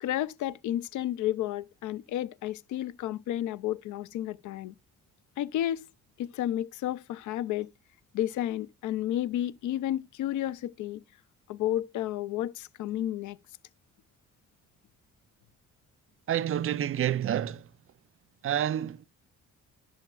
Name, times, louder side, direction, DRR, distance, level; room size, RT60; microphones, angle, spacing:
voice 1, 0.0-4.7 5.4-5.9 6.2-7.7 8.1-11.0 11.5-13.4, left 12 dB, 75° left, 0.5 m, -31 dB
voice 2, 16.3-17.6 18.4-19.1, right 10 dB, 45° right, 0.5 m, -28 dB
11.5 x 6.4 x 2.3 m
cardioid pair, 90°, 30 cm